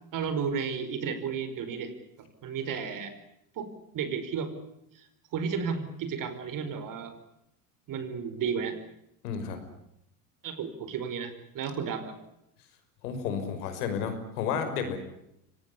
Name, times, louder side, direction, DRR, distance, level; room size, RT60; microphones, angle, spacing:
voice 1, 0.1-3.1 3.6-4.5 5.0-7.1 7.9-8.8 10.4-12.2, right 6 dB, 45° right, 11 dB, 5.1 m, -33 dB
voice 2, 9.2-9.6 13.0-15.0, left 7 dB, 80° left, 8 dB, 5.8 m, -32 dB
25.0 x 19.0 x 9.9 m, 0.81 s
hypercardioid pair, 95°, 46 cm